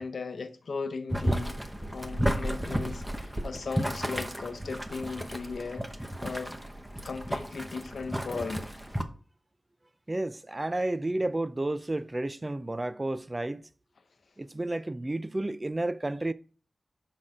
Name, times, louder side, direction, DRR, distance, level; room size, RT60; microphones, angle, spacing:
voice 1, 0.0-1.7 1.9-6.5 7.0-8.7, left 4 dB, 75° left, 0.9 m, -37 dB
Boiling, 1.1-9.0, equal, 5° right, 0.9 m, -33 dB
voice 2, 10.1-13.6 14.4-16.3, right 2 dB, 25° right, 0.4 m, -31 dB
6.3 x 5.9 x 4.9 m
wide cardioid pair, 100°, 0 cm